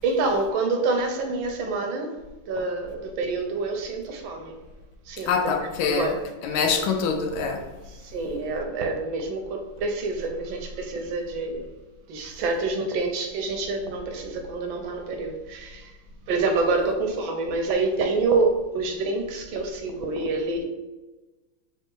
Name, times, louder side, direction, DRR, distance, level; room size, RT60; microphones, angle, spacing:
voice 1, 0.0-2.2 2.5-4.6 5.1-5.3 5.6-6.1 8.0-11.7 12.1-15.9 16.3-20.6, right 3 dB, 75° right, 1.3 m, -27 dB
voice 2, 5.3-6.1 6.4-7.7, left 5 dB, 80° left, 1.4 m, -24 dB
3.4 x 3.3 x 4.5 m
omnidirectional pair, 2.3 m